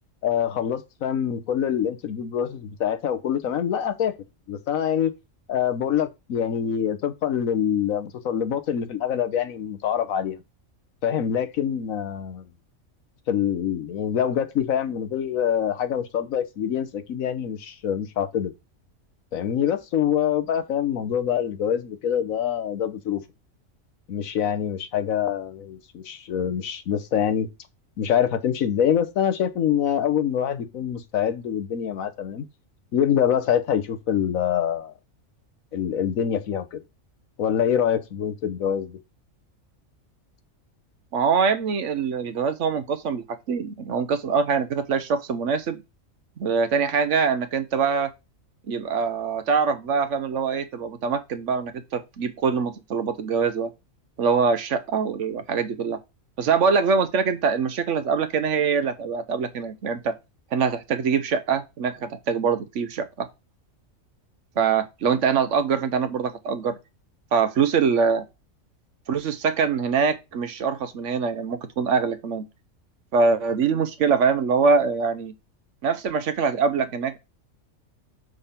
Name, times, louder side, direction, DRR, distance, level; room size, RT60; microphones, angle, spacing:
voice 1, 0.2-4.1 4.5-5.1 5.5-10.4 11.0-12.5 13.3-18.5 19.3-23.2 24.1-27.5 28.0-32.4 32.9-34.9 35.7-36.8 37.4-39.0, left 9 dB, 85° left, 1.3 m, -25 dB
voice 2, 41.1-45.8 46.4-48.1 48.7-53.7 54.2-56.0 56.4-60.1 60.5-63.3 64.6-66.8 67.3-68.2 69.1-72.5 73.1-75.3 75.8-77.2, right 5 dB, 65° right, 1.1 m, -23 dB
6.4 x 3.6 x 5.6 m
omnidirectional pair, 1.4 m